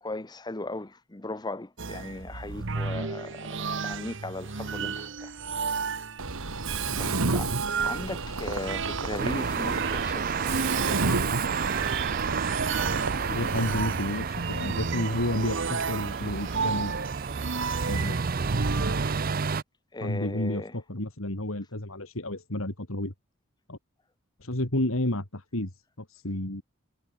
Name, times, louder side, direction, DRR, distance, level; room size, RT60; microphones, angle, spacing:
voice 1, 0.0-5.3 7.0-11.1 19.9-20.7, left 2 dB, 20° left, 0.9 m, -38 dB
sound 1, 1.8-19.2, right 5 dB, 60° right, 1.1 m, -33 dB
Mechanisms, 6.2-13.8, right 3 dB, 90° right, 1.8 m, -31 dB
sound 2, 9.2-19.6, right 5 dB, 45° right, 0.6 m, -31 dB
voice 2, 13.3-16.9 17.9-18.2 20.0-23.1 23.7-23.8 24.4-25.7 26.0-26.6, left 1 dB, 75° left, 3.4 m, -31 dB
head